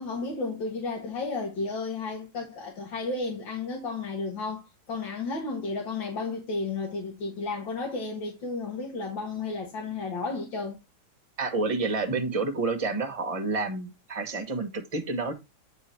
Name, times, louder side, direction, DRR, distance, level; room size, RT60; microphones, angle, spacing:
voice 1, 0.0-4.6 4.9-10.8, left 3 dB, 70° left, 2.4 m, -33 dB
voice 2, 11.4-15.3, right 3 dB, 20° right, 1.2 m, -29 dB
8.9 x 4.4 x 4.4 m
omnidirectional pair, 2.1 m